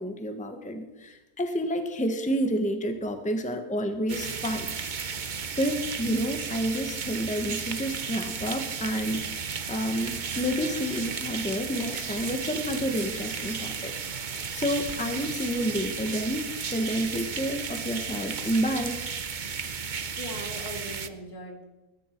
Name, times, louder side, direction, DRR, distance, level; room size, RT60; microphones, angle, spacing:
voice 1, 0.0-4.7 5.6-13.9 14.5-19.0, equal, 5° left, 6 dB, 1.3 m, -29 dB
sound 1, 4.1-21.1, right 6 dB, 40° right, 0.8 m, -34 dB
voice 2, 20.2-21.6, left 1 dB, 70° left, 0 dB, 3.8 m, -40 dB
21.0 x 14.0 x 4.6 m, 1.1 s
omnidirectional pair, 1.6 m